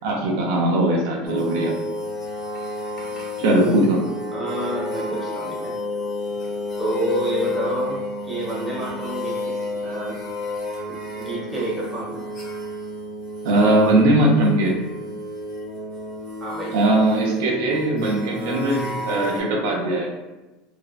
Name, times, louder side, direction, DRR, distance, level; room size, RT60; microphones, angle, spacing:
voice 1, 0.0-1.7 3.4-4.0 13.4-14.8 16.7-20.1, right 1 dB, 75° right, -1 dB, 0.5 m, -20 dB
sound 1, 1.3-19.4, left 1 dB, 35° left, 0.7 m, -31 dB
voice 2, 3.4-3.8 4.3-5.7 6.8-8.0 8.2-10.2 11.2-12.2 16.4-16.7, right 1 dB, 10° right, -5 dB, 0.7 m, -29 dB
2.5 x 2.1 x 2.4 m, 1.1 s
supercardioid pair, 145°, 0 cm